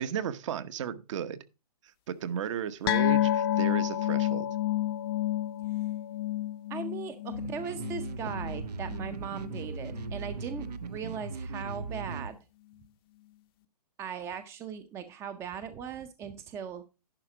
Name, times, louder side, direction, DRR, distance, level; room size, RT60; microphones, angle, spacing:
voice 1, 0.0-1.4 2.1-4.5 8.2-8.3, right 8 dB, 50° right, 1.0 m, -34 dB
sound 1, 2.9-9.7 10.0-10.2 10.5-10.6, left 13 dB, 35° left, 0.6 m, -30 dB
voice 2, 6.7-12.4 14.0-16.8, right 7 dB, 15° right, 0.5 m, -39 dB
sound 2, 7.3-12.3, right 4 dB, 85° right, 0.8 m, -38 dB
11.0 x 4.9 x 4.8 m
hypercardioid pair, 140°, 20 cm